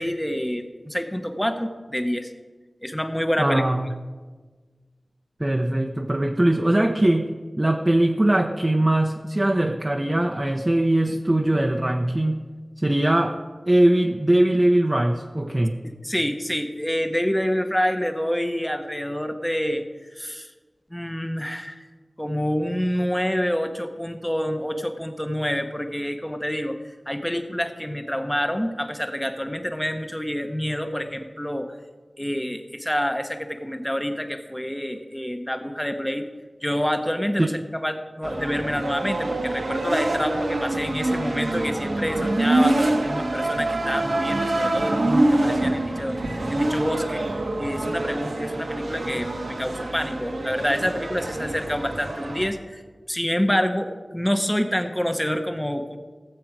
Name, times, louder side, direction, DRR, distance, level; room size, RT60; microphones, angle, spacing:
voice 1, 0.0-2.3 2.8-3.7 15.8-19.9 20.2-20.5 20.9-21.9 22.2-26.8 27.1-31.8 32.2-36.3 36.6-46.2 46.5-47.2 47.6-52.8 53.1-56.0, equal, 10° left, 7 dB, 1.0 m, -27 dB
voice 2, 3.4-3.9 5.4-12.5 12.8-13.4 13.7-15.8 37.4-37.5, right 1 dB, 25° right, 3 dB, 0.7 m, -21 dB
sound 1, 38.2-52.5, right 2 dB, 80° right, 1.3 m, -25 dB
17.0 x 7.7 x 4.7 m, 1.4 s
wide cardioid pair, 60°, 0 cm